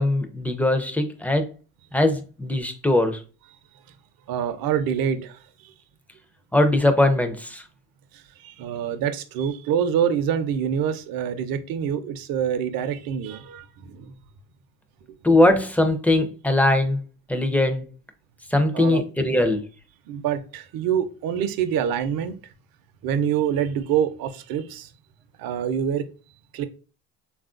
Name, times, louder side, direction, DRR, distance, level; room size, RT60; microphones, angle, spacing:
voice 1, 0.0-1.5 1.9-3.2 6.5-7.6 15.2-17.0 17.3-17.9 18.5-19.6, left 1 dB, 5° left, 0.4 m, -20 dB
voice 2, 4.3-5.7 8.1-14.1 18.7-19.0 20.1-22.3 23.0-24.9 25.4-26.1 26.5-26.6, right 8 dB, 55° right, 0.6 m, -26 dB
3.4 x 2.4 x 2.4 m
supercardioid pair, 75°, 43 cm